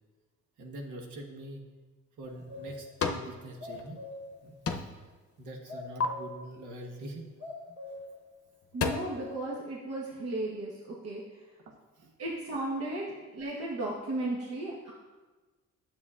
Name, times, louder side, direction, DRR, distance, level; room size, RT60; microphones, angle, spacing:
voice 1, 0.6-1.7 2.2-4.0 4.4-4.6 5.4-7.3 11.7-12.1 14.4-14.5, right 1 dB, 80° right, 2 dB, 1.2 m, -44 dB
sound 1, 2.2-3.3 3.7-4.4 4.6-5.1 5.4-6.0 7.9-8.0 8.5-8.9, left 5 dB, 50° left, 0.7 m, -34 dB
sound 2, 2.3-2.9 3.3-3.4 3.6-4.4 5.7-6.5 7.4-8.2 8.8-9.5, left 2 dB, 35° right, 2.2 m, -42 dB
voice 2, 8.7-11.4 12.2-13.0 13.3-14.9, right 2 dB, 55° right, -4 dB, 1.2 m, -35 dB
9.6 x 7.0 x 2.4 m, 1.3 s
cardioid pair, 90°, 30 cm